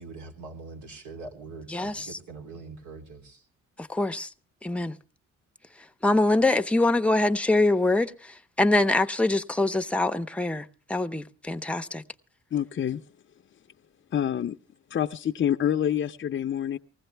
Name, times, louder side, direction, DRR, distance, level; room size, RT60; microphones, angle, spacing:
voice 1, 0.0-3.4, right 3 dB, 80° right, 3.3 m, -43 dB
voice 2, 1.7-2.1 3.8-4.3 4.6-4.9 6.0-12.0, left 2 dB, 5° left, 0.7 m, -24 dB
voice 3, 12.5-13.0 14.1-14.6 14.9-16.8, left 10 dB, 40° left, 0.6 m, -27 dB
19.5 x 15.5 x 3.4 m
cardioid pair, 90°, 30 cm